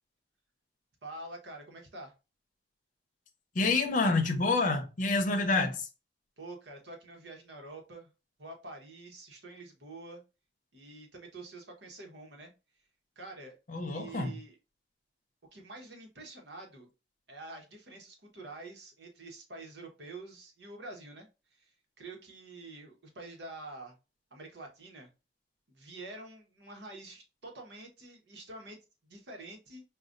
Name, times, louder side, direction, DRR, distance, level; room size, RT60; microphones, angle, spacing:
voice 1, 1.0-2.1 6.4-8.1 8.4-10.2 10.7-12.5 13.2-13.5 13.8-14.6 15.5-16.9 17.3-24.0 24.3-25.1 25.7-28.8 29.0-29.8, right 2 dB, 75° right, 1.1 m, -47 dB
voice 2, 3.5-5.9 13.7-14.3, left 3 dB, 45° left, 0.7 m, -28 dB
4.8 x 2.4 x 2.5 m
head